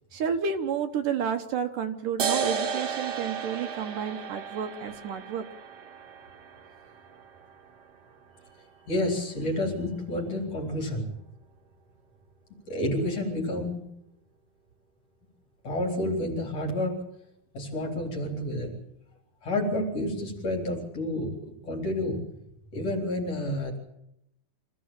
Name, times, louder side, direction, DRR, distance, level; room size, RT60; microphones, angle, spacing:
voice 1, 0.1-5.4, right 7 dB, 70° right, 6 dB, 2.6 m, -30 dB
sound 1, 2.2-9.2, right 6 dB, 50° right, 2.3 m, -35 dB
voice 2, 8.6-11.1 12.7-13.8 15.6-17.0 17.5-18.7 19.4-22.2 22.7-23.8, left 1 dB, 45° left, 2 dB, 4.8 m, -30 dB
26.0 x 15.5 x 8.9 m, 0.81 s
omnidirectional pair, 4.1 m